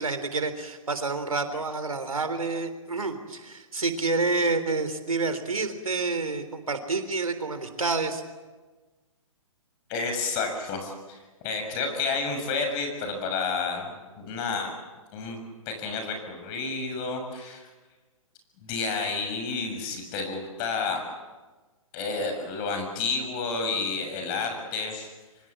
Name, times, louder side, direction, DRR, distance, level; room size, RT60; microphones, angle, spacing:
voice 1, 0.0-8.2, right 3 dB, 90° right, 9 dB, 3.6 m, -28 dB
voice 2, 9.9-11.2 11.4-14.7 15.1-17.7 18.6-21.0 21.9-25.1, left 4 dB, 35° left, 5 dB, 7.2 m, -30 dB
26.5 x 25.0 x 7.5 m, 1.3 s
hypercardioid pair, 135°, 17 cm